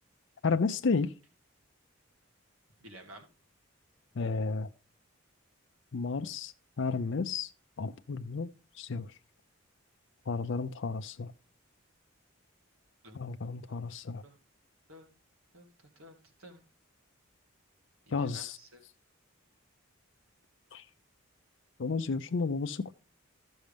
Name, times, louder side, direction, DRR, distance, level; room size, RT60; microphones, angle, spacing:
voice 1, 0.4-1.1 4.2-4.7 5.9-6.5 6.8-7.5 7.8-8.5 8.8-9.1 10.3-11.3 13.1-14.2 18.1-18.6 20.7-20.8 21.8-22.9, left 4 dB, 60° left, 0.5 m, -32 dB
voice 2, 2.8-3.3 13.0-13.2 14.2-14.4 14.9-15.1 15.5-15.7 16.0-16.6 18.1-18.8, equal, 85° right, 1.9 m, -52 dB
13.0 x 6.3 x 3.4 m
head